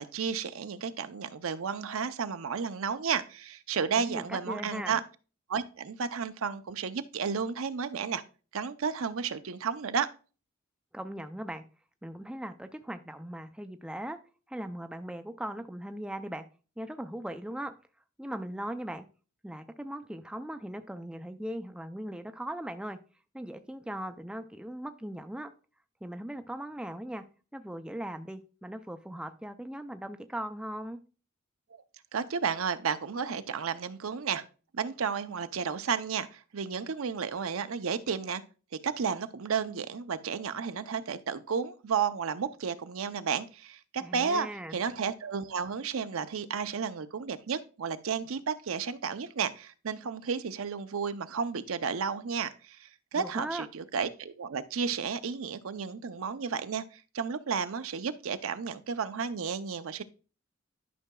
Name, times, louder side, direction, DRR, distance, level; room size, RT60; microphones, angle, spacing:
voice 1, 0.0-5.0 5.5-8.2 8.5-10.1 32.1-34.4 34.7-38.4 38.8-60.0, right 6 dB, 80° right, 11 dB, 0.6 m, -32 dB
voice 2, 3.9-5.0 10.9-11.6 12.0-14.2 14.5-16.4 16.8-17.7 18.2-19.0 19.4-23.0 23.3-25.5 26.0-27.2 27.5-31.0 44.0-44.8 53.2-53.7, right 1 dB, 5° right, 7 dB, 0.3 m, -39 dB
12.0 x 5.8 x 2.3 m, 0.35 s
head